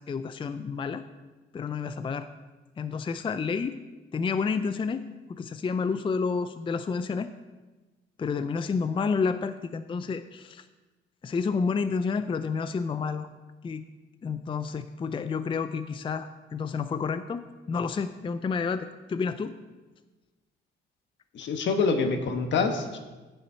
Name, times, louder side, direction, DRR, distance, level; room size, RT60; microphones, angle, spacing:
voice 1, 0.1-1.0 1.5-2.3 2.8-3.8 4.1-7.3 8.2-10.6 11.2-13.3 13.6-13.9 14.2-19.5, left 5 dB, 25° left, 11 dB, 0.4 m, -30 dB
voice 2, 21.3-23.0, left 4 dB, 65° left, 6 dB, 1.2 m, -26 dB
9.1 x 7.0 x 5.5 m, 1.2 s
cardioid pair, 90°, 20 cm